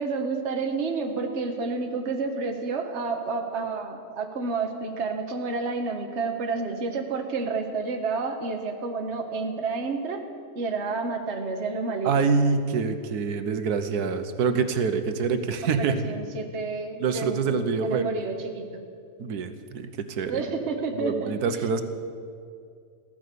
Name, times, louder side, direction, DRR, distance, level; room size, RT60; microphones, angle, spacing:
voice 1, 0.0-10.2 10.5-12.1 15.8-18.8 20.3-21.7, right 4 dB, 50° right, 3 dB, 1.6 m, -30 dB
voice 2, 12.0-16.0 17.0-18.1 19.2-20.4 21.0-21.8, right 5 dB, 90° right, 9 dB, 1.5 m, -26 dB
15.5 x 13.5 x 6.8 m, 2.4 s
omnidirectional pair, 1.6 m